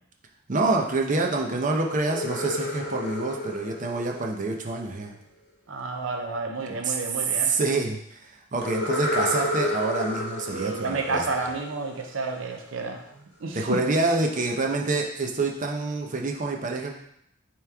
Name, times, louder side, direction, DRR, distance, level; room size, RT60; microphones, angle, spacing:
voice 1, 0.5-5.1 6.7-7.0 7.3-8.2 8.5-11.2 13.5-16.9, right 3 dB, 40° right, 1 dB, 0.7 m, -27 dB
sound 1, 2.0-5.0 8.6-12.3, left 1 dB, 60° left, 1.1 m, -31 dB
voice 2, 5.7-7.5 10.5-13.1 13.4-13.8, right 3 dB, 75° right, 3 dB, 0.6 m, -30 dB
9.1 x 3.1 x 3.5 m, 0.74 s
head